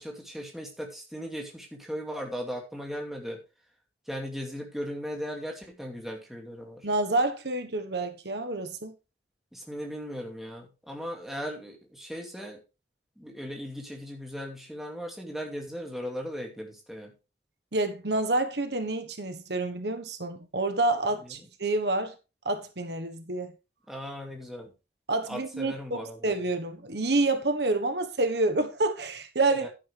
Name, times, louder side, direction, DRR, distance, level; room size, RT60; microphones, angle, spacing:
voice 1, 0.0-3.4 4.1-6.9 9.5-12.6 13.2-17.1 23.9-24.7 25.3-26.3 29.6-29.7, equal, ahead, 2.5 m, -37 dB
voice 2, 6.8-8.9 17.7-22.1 22.4-23.5 25.1-29.7, right 2 dB, 70° right, 1.4 m, -28 dB
11.5 x 9.8 x 3.5 m
head